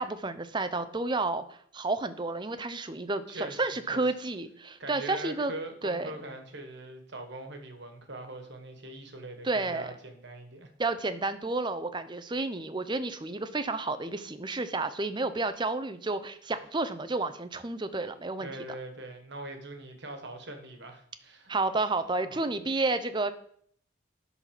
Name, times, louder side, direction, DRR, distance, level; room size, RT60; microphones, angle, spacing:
voice 1, 0.0-5.5 5.8-6.1 9.4-9.9 10.8-18.5 21.5-23.3, right 3 dB, 20° right, 11 dB, 0.5 m, -31 dB
voice 2, 3.3-3.6 3.9-4.0 4.8-10.7 18.4-21.5 22.3-22.5, right 1 dB, 55° right, 5 dB, 1.5 m, -42 dB
10.5 x 4.1 x 5.9 m, 0.63 s
head